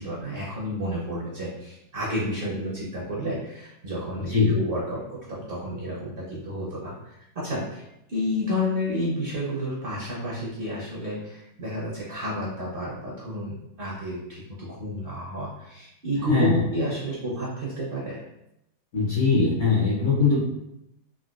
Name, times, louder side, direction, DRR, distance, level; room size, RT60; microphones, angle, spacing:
voice 1, 0.0-18.2, equal, 55° right, -5 dB, 0.6 m, -31 dB
voice 2, 4.2-4.6 16.3-16.6 18.9-20.4, left 4 dB, 60° left, -5 dB, 0.8 m, -21 dB
3.7 x 2.2 x 2.3 m, 0.84 s
omnidirectional pair, 1.7 m